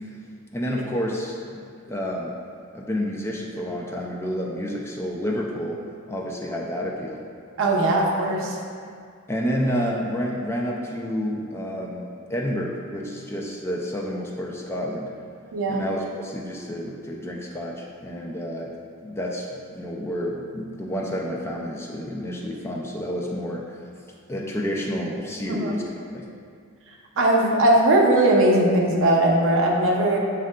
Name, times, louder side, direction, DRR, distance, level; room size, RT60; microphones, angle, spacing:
voice 1, 0.5-1.6 1.9-2.4 2.7-5.8 6.1-7.2 9.3-15.1 15.7-18.7 19.0-23.6 24.3-25.8 26.1-26.3, equal, 10° left, -2 dB, 0.3 m, -29 dB
voice 2, 7.6-8.6 15.5-15.8 25.5-25.8 27.2-30.2, right 1 dB, 60° right, -1 dB, 0.6 m, -19 dB
6.4 x 3.6 x 2.2 m, 2.3 s
head